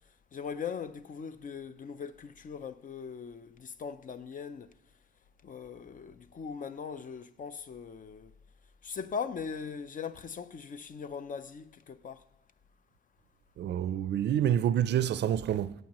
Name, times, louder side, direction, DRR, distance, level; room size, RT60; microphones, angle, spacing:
voice 1, 0.3-4.7 5.4-8.3 8.8-12.2, left 6 dB, 40° left, 0.5 m, -40 dB
voice 2, 13.6-15.7, right 10 dB, 60° right, 0.4 m, -28 dB
14.5 x 5.4 x 3.0 m
cardioid pair, 90°, 20 cm